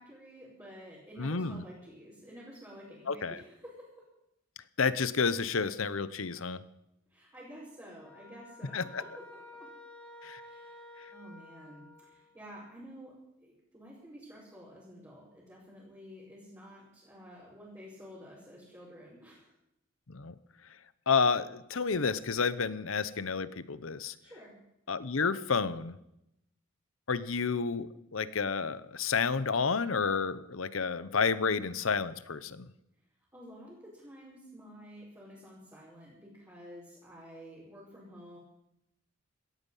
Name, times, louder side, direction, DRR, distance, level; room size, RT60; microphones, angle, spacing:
voice 1, 0.0-3.9 7.1-9.4 10.4-19.5 24.2-24.6 33.3-38.4, equal, 15° right, -8 dB, 5.1 m, -50 dB
voice 2, 1.2-1.6 3.1-3.4 4.8-6.6 8.7-9.0 10.2-10.4 20.1-20.3 21.1-24.1 24.9-26.0 27.1-32.7, left 5 dB, 75° left, 15 dB, 0.9 m, -30 dB
sound 1, 8.0-12.5, left 2 dB, 5° left, 1.9 m, -52 dB
17.5 x 14.0 x 5.6 m, 0.82 s
head